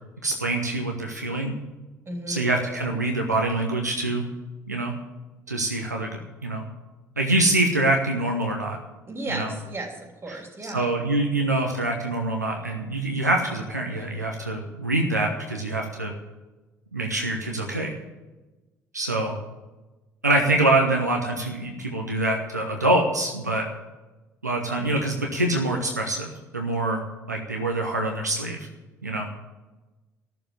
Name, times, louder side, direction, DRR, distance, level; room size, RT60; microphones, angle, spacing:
voice 1, 0.2-1.5 2.3-4.2 4.7-4.9 5.5-6.6 7.2-8.8 9.3-9.5 10.3-16.1 16.9-17.9 18.9-19.4 20.2-23.7 24.4-27.0 27.3-28.7 29.0-29.3, right 2 dB, 85° right, 1 dB, 1.0 m, -25 dB
voice 2, 2.1-2.5 9.1-10.9, right 2 dB, 25° right, 2 dB, 3.5 m, -35 dB
13.5 x 7.0 x 9.8 m, 1.2 s
figure-of-eight pair, 50°, 9 cm